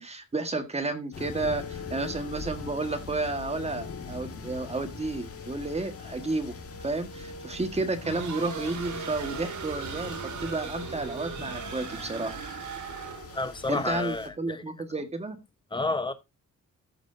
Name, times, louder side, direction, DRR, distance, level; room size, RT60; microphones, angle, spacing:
voice 1, 0.0-6.5 6.8-12.4 13.7-15.4, right 2 dB, 20° right, 1.5 m, -32 dB
sound 1, 1.1-14.3, left 3 dB, 45° left, 1.8 m, -41 dB
sound 2, 8.0-13.4, right 6 dB, 70° right, 2.0 m, -38 dB
voice 2, 13.3-14.6 15.7-16.1, left 2 dB, 15° left, 1.0 m, -30 dB
14.0 x 6.2 x 2.6 m
wide cardioid pair, 160°, 31 cm